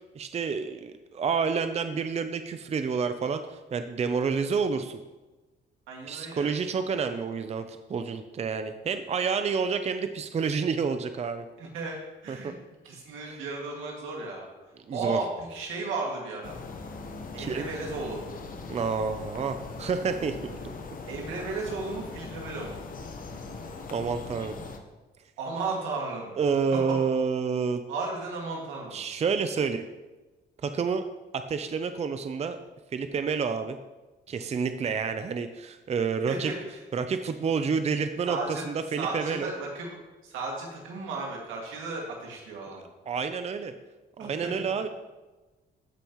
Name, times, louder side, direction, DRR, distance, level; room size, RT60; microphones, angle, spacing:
voice 1, 0.1-5.0 6.1-11.4 12.3-12.5 13.2-13.4 14.9-15.2 17.4-17.7 18.7-20.6 23.9-24.6 26.4-27.8 28.9-29.8 30.6-31.0 31.3-32.6 32.9-33.8 34.3-36.5 36.9-39.5 43.1-43.7 44.2-44.9, right 5 dB, 35° right, 8 dB, 0.5 m, -29 dB
voice 2, 5.9-6.5 11.6-12.0 12.2-12.5 12.8-14.5 14.9-16.6 17.3-18.2 21.1-22.8 25.4-26.3 26.7-26.8 27.9-29.0 36.3-36.8 38.3-38.6 39.0-42.8 44.2-44.3, right 3 dB, 90° right, -2 dB, 2.2 m, -34 dB
sound 1, 16.4-24.8, left 4 dB, 45° left, 1.0 m, -40 dB
14.5 x 5.2 x 3.1 m, 1.2 s
cardioid pair, 90°, 20 cm